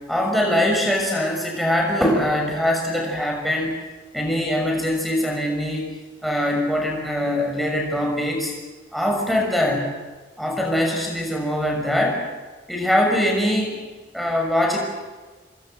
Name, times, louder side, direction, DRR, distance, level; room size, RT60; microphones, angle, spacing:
voice 1, 0.1-3.8 4.1-6.0 6.2-8.5 8.9-9.9 10.4-12.2 12.7-13.8 14.1-14.8, left 1 dB, ahead, 0 dB, 6.4 m, -22 dB
26.5 x 25.5 x 8.0 m, 1.3 s
head